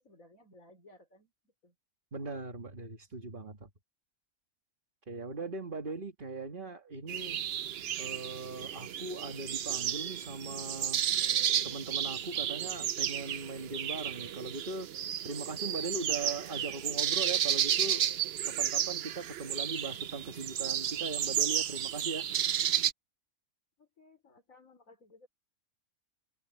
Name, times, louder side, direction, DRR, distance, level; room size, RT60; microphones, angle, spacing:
voice 1, 0.0-1.7 23.8-25.3, left 2 dB, 85° left, 5.0 m, -59 dB
voice 2, 2.1-3.7 5.1-7.4 8.0-11.0 11.6-14.9 15.2-18.0 18.4-22.3, right 3 dB, 40° right, 2.0 m, -40 dB
sound 1, 7.1-22.9, right 10 dB, 60° right, 0.8 m, -32 dB
omnidirectional pair, 1.4 m